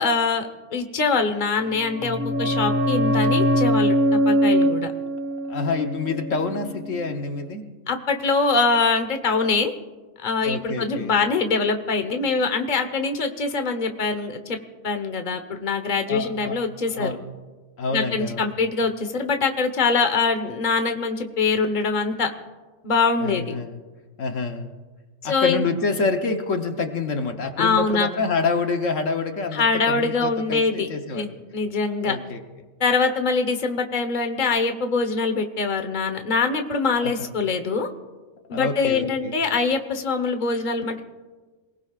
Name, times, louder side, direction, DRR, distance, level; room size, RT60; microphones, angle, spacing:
voice 1, 0.0-3.9 4.2-4.9 7.9-9.8 10.2-14.6 14.8-17.1 17.9-22.3 22.8-23.5 25.2-25.6 27.6-28.1 29.5-30.9 31.1-32.2 32.8-37.9 38.5-41.0, left 4 dB, 35° left, 6 dB, 1.3 m, -23 dB
sound 1, 1.6-7.0 7.3-7.4, equal, 10° right, 1.3 m, -22 dB
voice 2, 5.5-7.6 10.4-11.1 16.1-16.6 16.9-17.2 17.8-18.5 23.2-23.8 24.2-24.7 25.2-31.3 32.0-32.4 37.0-37.3 38.5-39.3, left 4 dB, 70° left, 5 dB, 1.4 m, -27 dB
27.0 x 19.5 x 2.5 m, 1.3 s
omnidirectional pair, 1.4 m